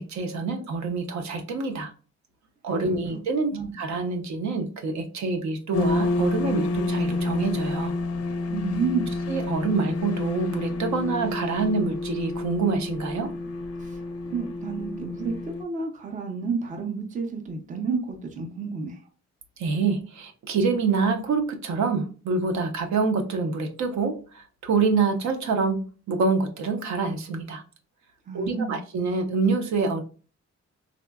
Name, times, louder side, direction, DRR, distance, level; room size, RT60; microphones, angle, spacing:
voice 1, 0.0-1.9 2.6-7.9 9.3-13.3 19.6-25.8 26.1-27.6 28.3-30.0, right 4 dB, 70° right, 0.6 m, -26 dB
sound 1, 5.7-15.6, left 2 dB, 55° left, 0.4 m, -29 dB
voice 2, 8.5-9.1 13.8-14.0 14.3-19.0 28.3-28.8, right 5 dB, 25° right, 0.5 m, -30 dB
3.6 x 2.1 x 2.2 m
wide cardioid pair, 165°, 29 cm